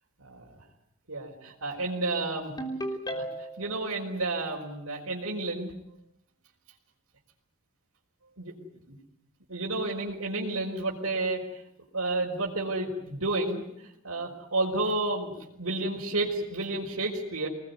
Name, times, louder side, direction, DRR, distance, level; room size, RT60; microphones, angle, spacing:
voice 1, 0.2-0.5 1.1-2.5 3.1-3.2 3.6-5.7 8.4-8.5 8.9-9.0 9.5-11.4 11.9-13.6 14.0-17.5, right 2 dB, 75° right, -5 dB, 4.6 m, -31 dB
Ringtone, 2.6-3.7, right 1 dB, 20° left, 3.5 m, -34 dB
26.5 x 20.0 x 9.5 m, 0.78 s
head